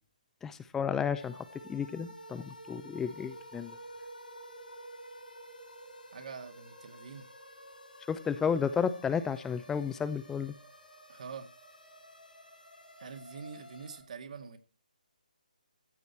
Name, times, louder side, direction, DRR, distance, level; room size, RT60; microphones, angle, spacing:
voice 1, 0.4-1.4 1.7-3.7 8.1-10.5, left 6 dB, 10° left, 0.6 m, -32 dB
sound 1, 1.2-14.0, equal, 85° left, 4.9 m, -51 dB
voice 2, 6.1-7.3 11.1-11.5 13.0-14.6, right 5 dB, 55° right, 2.0 m, -45 dB
14.5 x 8.1 x 4.4 m
figure-of-eight pair, 145°, 5 cm